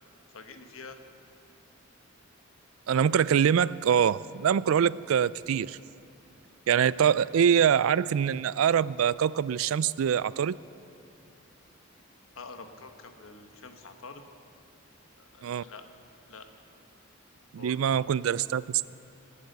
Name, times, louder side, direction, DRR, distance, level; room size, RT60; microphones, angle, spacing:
voice 1, 0.3-1.0 12.3-14.2 15.3-15.8 16.3-16.5 17.6-18.1, left 4 dB, 85° left, 7 dB, 1.2 m, -46 dB
voice 2, 2.9-5.8 6.7-10.6 15.4-15.6 17.5-19.0, right 8 dB, 90° right, 20 dB, 0.4 m, -24 dB
25.5 x 8.6 x 6.6 m, 2.8 s
head